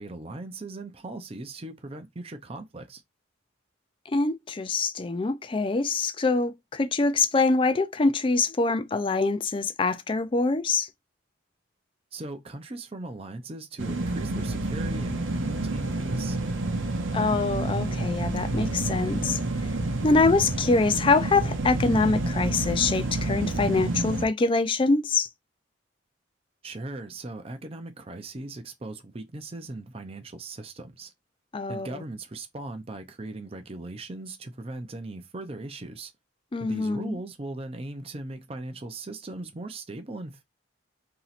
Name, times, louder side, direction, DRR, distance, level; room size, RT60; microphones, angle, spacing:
voice 1, 0.0-3.0 12.1-16.4 26.6-31.1 31.7-36.1 36.6-40.4, right 2 dB, 30° right, 0.5 m, -38 dB
voice 2, 4.1-10.9 17.1-19.7 20.0-25.3 31.5-32.0 36.5-37.2, left 3 dB, 25° left, 0.4 m, -24 dB
sound 1, 13.8-24.3, right 2 dB, 90° right, 0.8 m, -29 dB
3.0 x 2.8 x 4.0 m
head